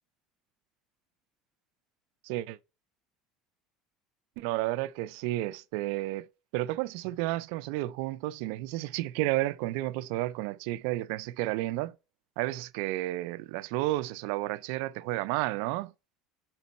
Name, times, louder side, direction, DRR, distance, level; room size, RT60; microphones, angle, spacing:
voice 1, 2.2-2.6 4.4-6.3 6.5-11.9 12.4-15.9, right 17 dB, 65° right, 0.3 m, -32 dB
5.2 x 4.5 x 4.1 m
cardioid pair, 180°, 0 cm